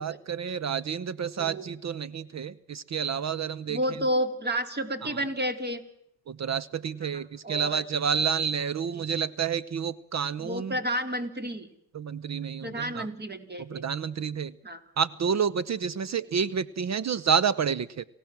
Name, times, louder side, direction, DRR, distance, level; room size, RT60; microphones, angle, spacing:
voice 1, 0.0-3.8 5.0-5.2 6.3-10.8 11.9-13.1 13.6-14.6 15.0-18.1, right 7 dB, 40° right, 20 dB, 0.9 m, -29 dB
voice 2, 1.4-1.7 3.7-5.8 7.1-7.8 8.9-9.1 10.4-11.7 12.6-13.8 14.6-14.8, equal, 25° right, 9 dB, 3.3 m, -31 dB
28.5 x 16.5 x 7.5 m, 0.78 s
supercardioid pair, 65°, 42 cm